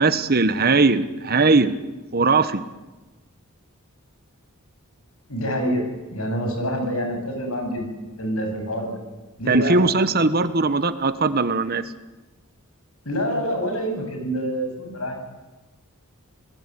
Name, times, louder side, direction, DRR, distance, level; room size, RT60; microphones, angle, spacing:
voice 1, 0.0-1.7 2.1-2.6 9.5-11.8, right 3 dB, 45° right, 12 dB, 1.3 m, -19 dB
voice 2, 5.3-5.8 6.1-7.9 8.2-9.0 9.4-9.8 13.0-15.2, equal, 70° left, 4 dB, 7.9 m, -26 dB
29.0 x 20.0 x 9.9 m, 1.2 s
head